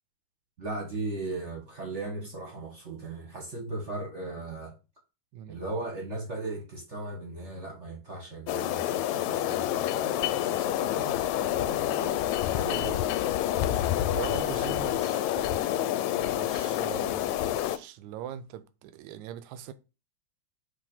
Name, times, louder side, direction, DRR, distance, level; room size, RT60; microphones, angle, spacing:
voice 1, 0.6-4.7 5.5-12.3 12.5-13.0 14.8-14.9, right 2 dB, 35° right, 1.1 m, -38 dB
voice 2, 5.3-5.6 12.6-13.1 14.1-15.7 16.1-19.7, right 10 dB, 80° right, 1.9 m, -41 dB
sound 1, 8.5-17.8, left 12 dB, 80° left, 1.8 m, -28 dB
6.4 x 3.5 x 5.5 m
omnidirectional pair, 3.3 m